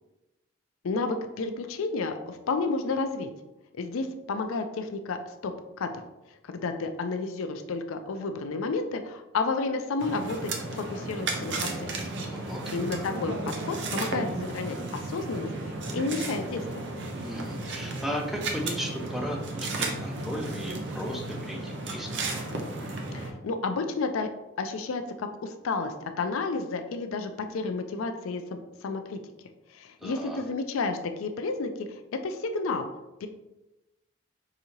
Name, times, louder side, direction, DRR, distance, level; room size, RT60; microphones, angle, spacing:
voice 1, 0.8-3.3 3.7-5.5 5.8-6.0 6.4-11.9 12.7-14.3 14.5-15.5 15.9-16.9 23.1-24.3 24.6-29.2 29.7-32.9 33.2-33.3, left 3 dB, 80° left, 7 dB, 0.4 m, -31 dB
sound 1, 10.0-23.3, right 2 dB, 55° right, 0.5 m, -34 dB
voice 2, 17.2-22.3 30.0-30.4, equal, ahead, 0 dB, 0.4 m, -36 dB
4.9 x 2.7 x 2.9 m, 0.98 s
head